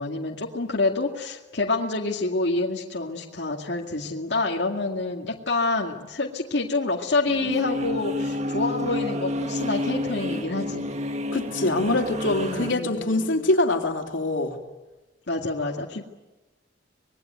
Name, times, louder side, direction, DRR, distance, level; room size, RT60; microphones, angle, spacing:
voice 1, 0.0-10.9 12.4-13.3 15.3-16.1, left 3 dB, 65° left, -1 dB, 2.2 m, -27 dB
sound 1, 7.3-12.7, left 1 dB, 35° right, 1.6 m, -29 dB
voice 2, 11.3-14.6, left 2 dB, 90° left, 3 dB, 3.3 m, -24 dB
26.0 x 21.5 x 9.4 m, 1.1 s
head